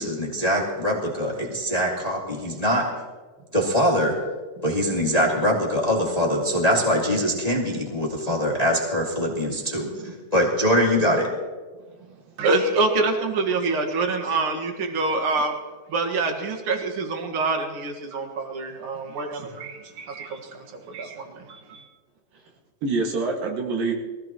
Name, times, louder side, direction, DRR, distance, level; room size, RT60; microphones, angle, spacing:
voice 1, 0.0-2.9 3.5-4.2 4.6-11.3, equal, 15° left, -3 dB, 1.7 m, -23 dB
voice 2, 12.4-15.6 15.9-21.8, right 3 dB, 45° right, 4 dB, 2.1 m, -26 dB
voice 3, 22.8-23.9, right 3 dB, 85° right, 0 dB, 3.7 m, -28 dB
23.0 x 16.0 x 3.0 m, 1.4 s
omnidirectional pair, 3.9 m